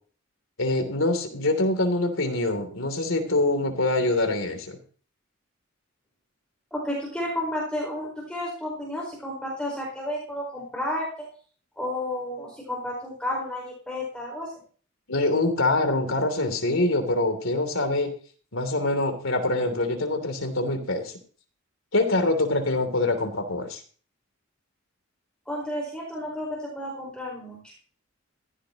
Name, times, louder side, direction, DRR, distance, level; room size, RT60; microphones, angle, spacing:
voice 1, 0.6-4.8 15.1-18.1 18.5-21.1 21.9-23.8, left 2 dB, 75° left, 6 dB, 3.0 m, -24 dB
voice 2, 6.7-11.3 11.8-14.5 25.5-27.6, left 1 dB, 5° left, -3 dB, 4.8 m, -32 dB
16.0 x 15.5 x 3.0 m, 0.43 s
head